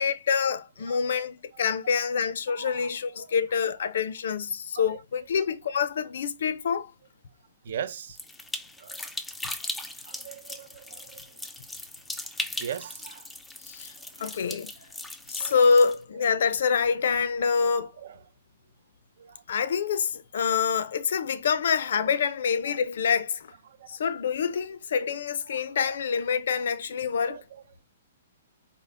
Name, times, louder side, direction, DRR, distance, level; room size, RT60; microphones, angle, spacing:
voice 1, 0.0-6.9 13.7-13.9 14.2-14.7 15.3-17.9 19.5-23.5 23.9-27.4, left 6 dB, 70° left, 0.4 m, -26 dB
voice 2, 0.9-1.3 2.5-2.9 3.2-3.3 4.7-5.0 7.6-8.2 8.8-9.0 10.0-11.2 12.6-13.3 14.2-14.4 15.4-15.6 17.8-18.2 19.2-19.4 20.5-20.6 22.7-22.8 23.7-24.0 25.5-26.0 27.1-27.8, right 9 dB, 65° right, 0.4 m, -41 dB
sound 1, 8.2-16.0, left 2 dB, 5° left, 0.4 m, -38 dB
3.7 x 2.0 x 3.3 m
hypercardioid pair, 140°, 0 cm